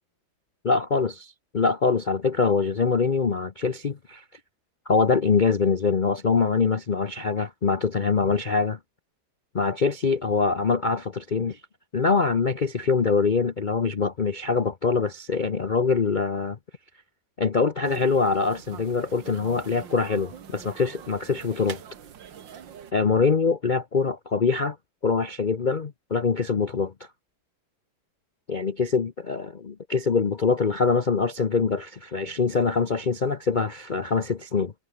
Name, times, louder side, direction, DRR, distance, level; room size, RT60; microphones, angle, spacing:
voice 1, 0.6-1.1 1.5-4.2 4.9-8.8 9.5-11.6 11.9-16.6 17.4-21.8 22.9-24.8 25.0-26.9 28.5-34.7, left 4 dB, 70° left, 0.4 m, -24 dB
sound 1, 17.8-22.9, right 8 dB, 65° right, 2.2 m, -44 dB
omnidirectional pair, 2.2 m